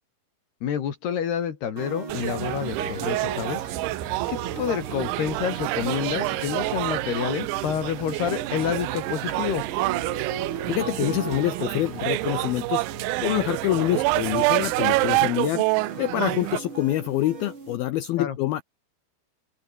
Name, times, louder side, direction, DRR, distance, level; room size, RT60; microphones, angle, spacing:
voice 1, 0.6-3.6 4.3-9.6 15.2-15.3 18.2-18.4, left 8 dB, 60° left, 4.3 m, -28 dB
sound 1, 1.8-17.8, right 4 dB, 30° right, 4.9 m, -39 dB
sound 2, 2.1-15.2, right 10 dB, 65° right, 4.2 m, -39 dB
sound 3, 2.1-16.6, right 24 dB, 85° right, 2.8 m, -28 dB
voice 2, 10.7-12.9 13.2-15.7 16.0-18.6, left 15 dB, 75° left, 2.2 m, -26 dB
open air
omnidirectional pair, 5.4 m